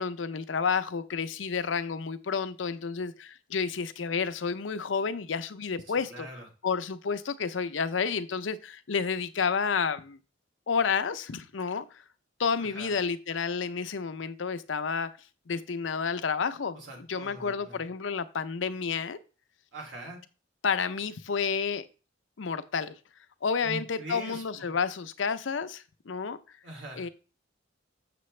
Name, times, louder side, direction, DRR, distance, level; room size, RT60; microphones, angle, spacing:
voice 1, 0.0-6.3 6.6-10.2 10.7-12.0 12.4-15.1 15.5-16.8 17.1-19.2 20.6-21.9 22.4-23.0 23.4-26.4 27.0-27.1, left 5 dB, 80° left, 0.6 m, -30 dB
voice 2, 5.9-6.5 12.6-12.9 16.7-17.8 19.7-20.2 23.6-24.7 26.6-27.1, right 1 dB, 75° right, 2.7 m, -42 dB
6.9 x 6.7 x 3.2 m
head